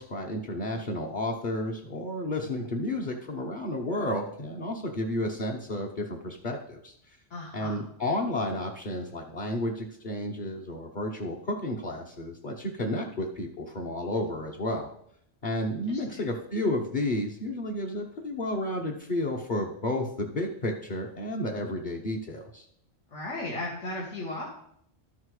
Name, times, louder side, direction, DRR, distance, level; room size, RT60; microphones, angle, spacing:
voice 1, 0.0-6.9 7.5-14.9 15.4-22.6, left 1 dB, 45° left, -2 dB, 1.1 m, -31 dB
voice 2, 7.3-7.8 15.9-16.0 23.1-24.5, left 2 dB, 85° left, -3 dB, 2.0 m, -35 dB
12.5 x 6.0 x 4.8 m, 0.69 s
omnidirectional pair, 1.2 m